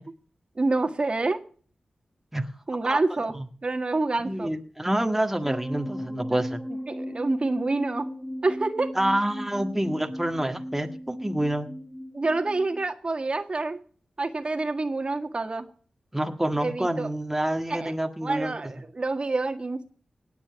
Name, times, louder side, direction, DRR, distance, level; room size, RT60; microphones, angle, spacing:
voice 1, 0.6-1.4 2.7-3.3 3.6-4.5 6.1-6.4 6.9-8.1 8.4-8.9 12.1-13.8 14.2-15.7 16.6-17.1 17.7-17.9 18.2-19.9, right 3 dB, 45° right, 7 dB, 1.7 m, -27 dB
voice 2, 4.2-6.6 8.9-11.7 16.1-18.5, right 1 dB, 10° right, 4 dB, 1.7 m, -27 dB
sound 1, 5.4-12.8, equal, 5° left, 2.9 m, -37 dB
18.5 x 7.2 x 6.9 m, 0.43 s
cardioid pair, 50°, 2 cm